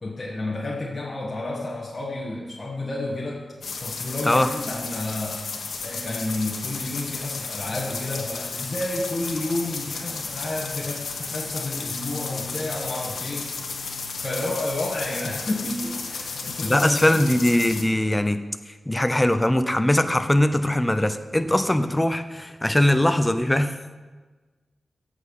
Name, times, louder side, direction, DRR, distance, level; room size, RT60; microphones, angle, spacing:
voice 1, 0.0-3.4 3.8-5.4 5.8-13.5 14.2-17.3, left 2 dB, 30° left, -5 dB, 1.5 m, -30 dB
sound 1, 3.6-17.8, left 4 dB, 75° left, 1.2 m, -33 dB
voice 2, 16.6-18.4 18.7-23.8, left 1 dB, 10° left, 9 dB, 0.6 m, -21 dB
15.5 x 6.6 x 5.4 m, 1.3 s
wide cardioid pair, 155°, 0 cm